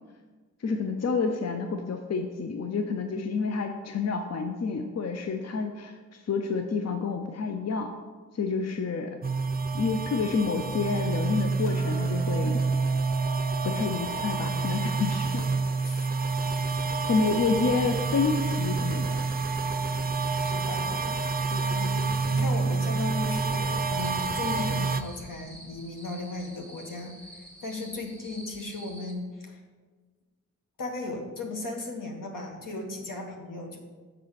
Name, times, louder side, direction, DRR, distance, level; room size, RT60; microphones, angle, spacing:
voice 1, 0.6-7.9 8.3-9.2 9.7-12.6 13.6-15.5 17.1-19.2 20.9-21.2 21.5-21.7, left 4 dB, 50° left, 5 dB, 0.6 m, -29 dB
sound 1, 9.2-25.0, right 4 dB, 30° right, 0.5 m, -28 dB
Hammer, 11.7-17.9, right 7 dB, 25° left, 1.3 m, -45 dB
voice 2, 16.8-17.1 17.5-17.7 20.4-21.3 21.7-29.6 30.8-33.8, left 2 dB, 75° left, 2 dB, 1.3 m, -36 dB
sound 2, 24.0-29.1, right 1 dB, 5° left, 1.5 m, -48 dB
6.6 x 4.0 x 6.4 m, 1.4 s
cardioid pair, 50°, 33 cm